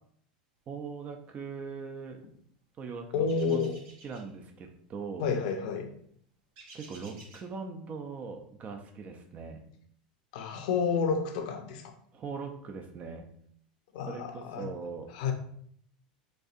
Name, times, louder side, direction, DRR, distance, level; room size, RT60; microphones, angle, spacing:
voice 1, 0.7-2.2 2.8-3.6 4.0-5.3 6.7-9.6 12.1-13.2 14.1-15.1, right 5 dB, 35° right, 4 dB, 0.5 m, -40 dB
voice 2, 3.1-3.8 5.2-5.9 10.3-11.9 13.9-14.7 15.1-15.3, left 5 dB, 65° left, 5 dB, 0.6 m, -30 dB
sound 1, 3.3-4.3 6.6-7.5, right 3 dB, 60° right, 1.1 m, -52 dB
4.2 x 2.6 x 2.4 m, 0.64 s
hypercardioid pair, 95°, 4 cm